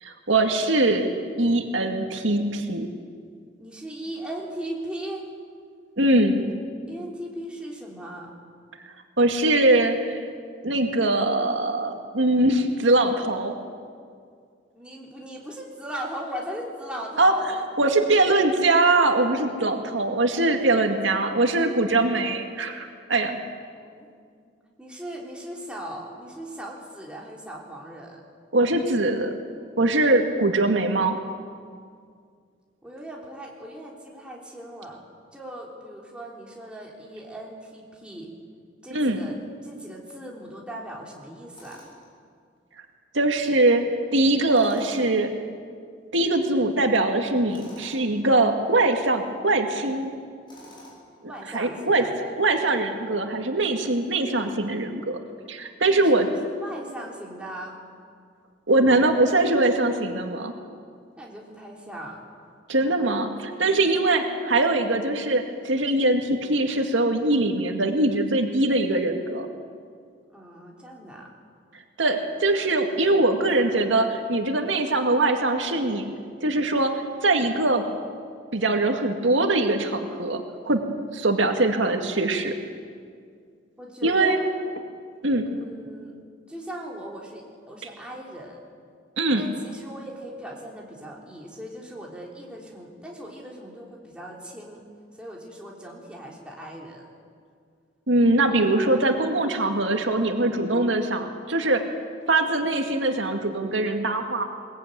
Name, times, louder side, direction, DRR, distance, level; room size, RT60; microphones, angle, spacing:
voice 1, 0.0-1.1 1.4-2.9 6.0-6.4 9.2-10.2 10.6-13.5 17.2-17.3 17.8-23.4 28.5-29.4 29.8-31.2 38.9-39.2 43.1-43.8 44.1-45.3 46.1-50.1 51.5-52.1 52.4-55.2 55.5-56.3 58.7-60.5 62.7-69.5 72.0-76.1 76.4-76.9 77.2-77.8 78.5-80.8 81.1-82.5 84.0-84.4 85.2-85.5 89.2-89.5 98.1-101.8 102.3-104.4, right 2 dB, 80° right, 4 dB, 2.0 m, -22 dB
voice 2, 3.6-5.2 6.9-8.3 14.7-17.5 23.7-24.1 24.8-28.2 32.8-35.0 35.3-38.3 38.8-39.3 39.6-41.9 51.3-52.3 55.9-56.3 56.6-57.8 61.2-62.2 63.9-64.4 70.3-71.3 83.8-84.5 85.5-86.1 86.5-88.6 89.3-94.8 95.1-97.1, right 1 dB, 5° right, -2 dB, 3.7 m, -38 dB
Tools, 41.5-42.1 44.5-45.2 47.5-48.0 50.5-51.2, equal, 25° left, 7.5 m, -48 dB
22.0 x 20.0 x 9.3 m, 2.2 s
head